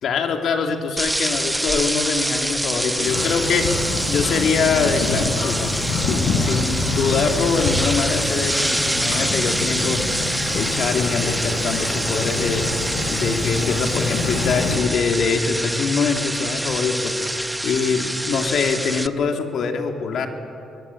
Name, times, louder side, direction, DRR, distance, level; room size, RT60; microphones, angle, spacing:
voice 1, 0.0-5.7 6.0-12.8 13.1-20.3, left 5 dB, 65° left, 4 dB, 2.8 m, -24 dB
sound 1, 1.0-19.1, right 1 dB, 5° right, 0.8 m, -26 dB
sound 2, 3.0-14.8, left 3 dB, 85° left, 6.7 m, -26 dB
22.5 x 21.5 x 8.6 m, 2.7 s
cardioid pair, 90°, 0 cm